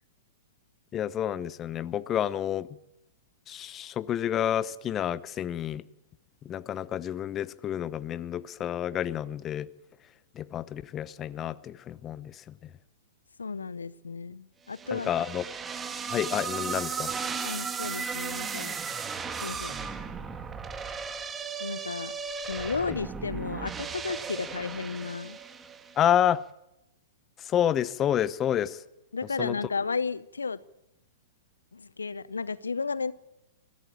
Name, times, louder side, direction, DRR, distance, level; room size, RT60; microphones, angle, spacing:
voice 1, 0.9-2.7 3.5-5.8 6.4-9.7 10.4-12.4 14.9-15.4 16.1-17.1 22.9-23.0 26.0-26.4 27.4-28.8 29.4-29.6, left 10 dB, 25° left, 0.8 m, -29 dB
voice 2, 13.4-15.1 17.4-18.8 19.4-19.8 21.6-22.1 22.5-25.4 29.1-30.6 31.7-33.1, left 4 dB, 80° left, 0.7 m, -33 dB
sound 1, 14.7-26.0, right 6 dB, 15° right, 1.8 m, -36 dB
22.0 x 16.5 x 8.7 m
figure-of-eight pair, 110°, 0 cm